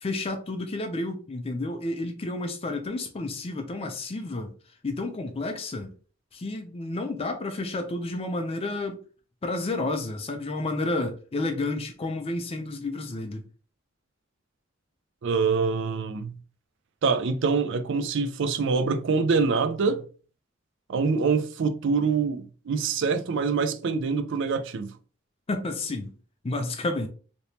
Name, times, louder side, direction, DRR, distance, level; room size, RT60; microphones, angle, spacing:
voice 1, 0.0-4.5 4.8-5.9 6.3-9.0 9.4-13.4 25.5-26.1 26.4-27.1, left 2 dB, 30° left, 0.4 m, -31 dB
voice 2, 15.2-16.4 17.0-20.0 20.9-24.9, right 5 dB, 65° right, 0.4 m, -25 dB
3.4 x 2.8 x 2.7 m
head